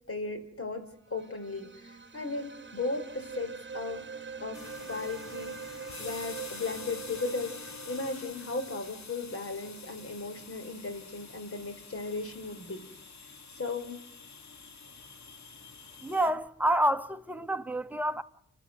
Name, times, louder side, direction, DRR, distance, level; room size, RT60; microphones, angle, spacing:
voice 1, 0.1-4.0 4.4-4.6 4.9-12.8 13.5-14.0, left 3 dB, 50° left, 4.6 m, -36 dB
sound 1, 1.0-9.9, right 5 dB, 40° right, 1.2 m, -45 dB
sound 2, 4.5-16.3, left 4 dB, 70° left, 2.5 m, -47 dB
voice 2, 16.0-18.2, right 1 dB, 5° right, 1.3 m, -28 dB
30.0 x 13.0 x 8.0 m
cardioid pair, 65°, 29 cm